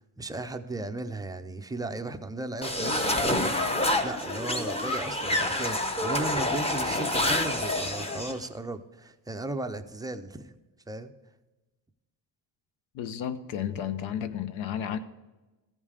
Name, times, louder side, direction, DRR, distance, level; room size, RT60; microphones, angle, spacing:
voice 1, 0.0-3.4 4.0-10.6 10.9-11.1, right 2 dB, 10° right, 0.4 m, -36 dB
sound 1, 2.6-8.4, left 1 dB, 15° left, 0.7 m, -27 dB
voice 2, 12.9-15.0, left 9 dB, 80° left, 0.7 m, -32 dB
15.0 x 5.4 x 4.8 m
cardioid pair, 140°, 46 cm